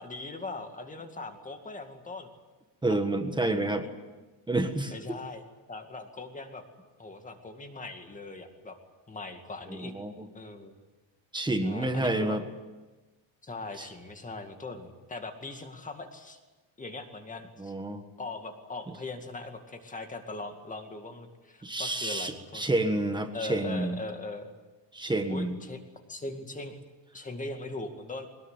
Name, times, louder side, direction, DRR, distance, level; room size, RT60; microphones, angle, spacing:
voice 1, 0.0-2.3 4.9-5.4 5.7-6.6 7.0-8.8 9.1-9.9 10.3-10.8 11.5-12.4 13.4-16.4 16.8-17.7 18.2-22.7 23.3-24.5 25.3-25.8 26.1-26.7 27.1-28.3, left 2 dB, 15° left, 5 dB, 2.2 m, -40 dB
voice 2, 2.8-3.9 4.5-5.2 9.7-10.3 11.3-12.4 13.8-13.9 17.6-18.0 21.6-24.0 24.9-25.6, right 2 dB, 10° right, 7 dB, 1.5 m, -29 dB
22.0 x 20.0 x 9.7 m, 1.2 s
cardioid pair, 165°, 47 cm